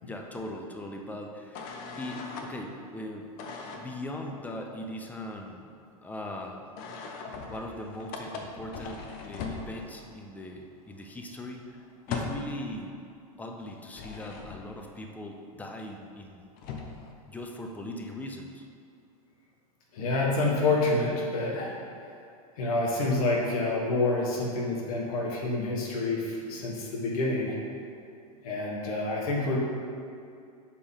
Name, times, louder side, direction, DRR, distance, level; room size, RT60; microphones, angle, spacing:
voice 1, 0.0-1.6 2.0-3.3 3.7-5.7 6.0-6.6 7.5-12.9 13.4-16.5 17.3-18.7, left 1 dB, 10° left, 2 dB, 0.6 m, -40 dB
sound 1, 1.5-2.5 3.4-3.9 6.8-10.2 10.5-10.6 10.9-12.6 13.6-14.8 16.3-16.4 16.6-17.1, left 4 dB, 50° left, 0.8 m, -39 dB
voice 2, 19.9-21.8 22.6-27.6 28.4-29.6, left 2 dB, 65° left, -2 dB, 1.4 m, -28 dB
6.5 x 4.4 x 3.7 m, 2.4 s
hypercardioid pair, 105°, 20 cm